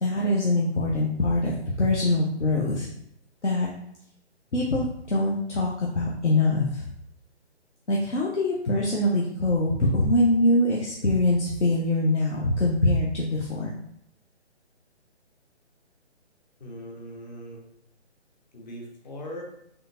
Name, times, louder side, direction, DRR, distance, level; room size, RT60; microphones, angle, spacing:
voice 1, 0.0-2.9 3.4-3.7 4.5-6.9 7.9-13.7, left 1 dB, 80° left, -3 dB, 0.8 m, -23 dB
voice 2, 16.6-17.7 18.5-19.4, equal, 40° left, 1 dB, 0.8 m, -40 dB
3.7 x 3.3 x 2.5 m, 0.73 s
figure-of-eight pair, 140°, 35 cm